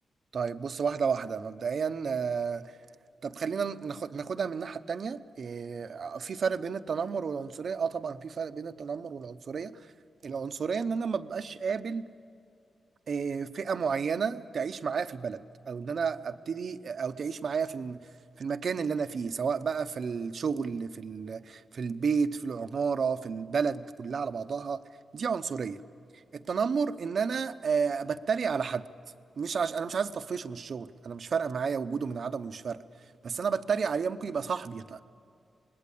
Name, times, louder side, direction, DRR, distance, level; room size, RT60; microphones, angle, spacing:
voice 1, 0.3-2.7 3.2-9.9 10.2-12.1 13.1-18.1 18.4-24.8 25.1-25.8 26.1-28.9 29.4-32.8 33.2-35.0, right 6 dB, 55° right, 0.8 m, -31 dB
26.0 x 20.5 x 8.5 m
wide cardioid pair, 125°, 0 cm